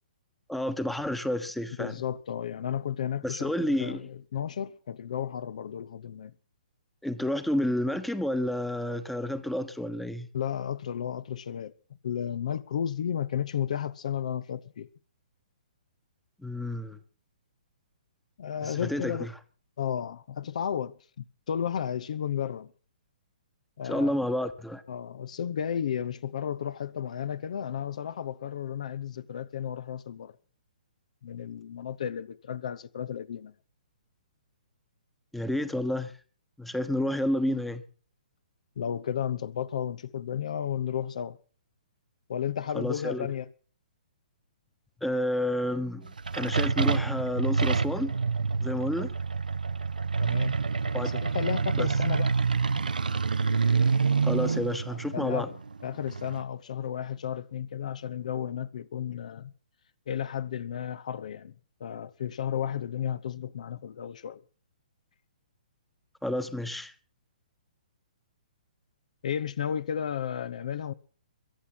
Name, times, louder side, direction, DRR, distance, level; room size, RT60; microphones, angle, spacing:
voice 1, 0.5-2.0 3.2-4.0 7.0-10.3 16.4-17.0 18.6-19.3 23.8-24.8 35.3-36.1 36.6-37.8 42.7-43.3 45.0-48.1 48.6-49.1 50.9-51.2 51.8-51.9 54.2-55.5 66.2-66.9, left 1 dB, ahead, 1.2 m, -30 dB
voice 2, 1.8-3.5 3.8-6.3 10.3-11.7 12.0-14.9 18.4-19.3 19.8-22.7 23.8-24.1 24.9-30.4 31.2-33.5 38.8-41.4 42.3-43.5 50.2-50.6 51.0-52.3 54.9-55.5 55.8-59.5 60.1-61.5 61.8-64.4 69.2-70.9, left 9 dB, 55° left, 0.8 m, -33 dB
sound 1, 46.1-56.4, right 4 dB, 75° right, 0.8 m, -27 dB
22.5 x 8.3 x 5.9 m
figure-of-eight pair, 130°, 5 cm